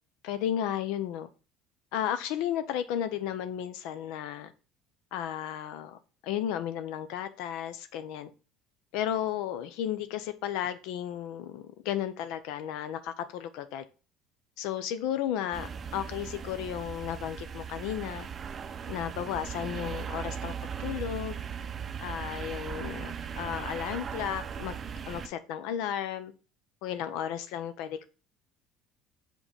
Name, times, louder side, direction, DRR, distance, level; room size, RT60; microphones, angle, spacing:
voice 1, 0.2-1.3 1.9-4.5 5.1-8.3 8.9-13.8 14.6-18.3 18.9-20.5 20.8-21.4 22.0-24.7 25.1-26.3 26.8-28.0, left 10 dB, 75° left, 0.5 m, -34 dB
sound 1, 15.5-25.3, right 7 dB, 35° right, 0.5 m, -38 dB
4.9 x 3.8 x 5.5 m
supercardioid pair, 90°, 0 cm